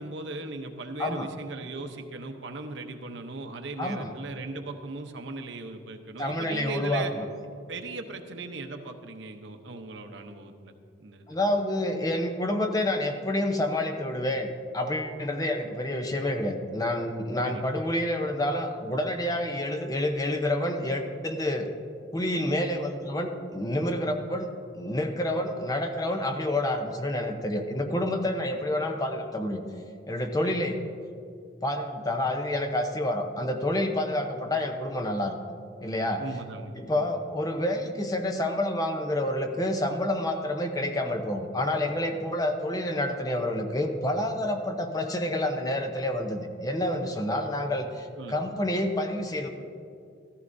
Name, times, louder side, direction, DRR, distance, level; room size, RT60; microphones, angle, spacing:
voice 1, 0.0-7.1 7.7-10.7 11.0-11.4 17.4-17.6 30.4-30.6 36.2-37.1 48.2-48.4, right 3 dB, 70° right, 5 dB, 0.8 m, -38 dB
voice 2, 1.0-1.3 3.8-4.1 6.2-7.2 11.3-21.7 22.1-29.6 30.1-30.8 31.6-35.4 35.8-36.2 36.8-49.5, left 1 dB, 20° left, 4 dB, 0.7 m, -28 dB
14.5 x 14.0 x 2.6 m, 2.4 s
head